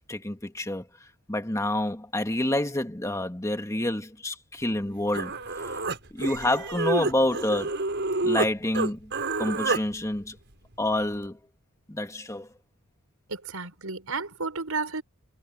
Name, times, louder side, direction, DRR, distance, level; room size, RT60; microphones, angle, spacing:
voice 1, 0.1-0.9 1.3-5.4 6.1-7.8 8.2-9.1 9.4-10.4 10.8-11.4 11.9-12.5, left 1 dB, 15° left, 1.8 m, -28 dB
Human voice, 4.8-4.9 5.1-8.5 8.7-9.8, right 3 dB, 55° right, 5.5 m, -28 dB
voice 2, 13.3-15.0, right 4 dB, 85° right, 5.2 m, -32 dB
head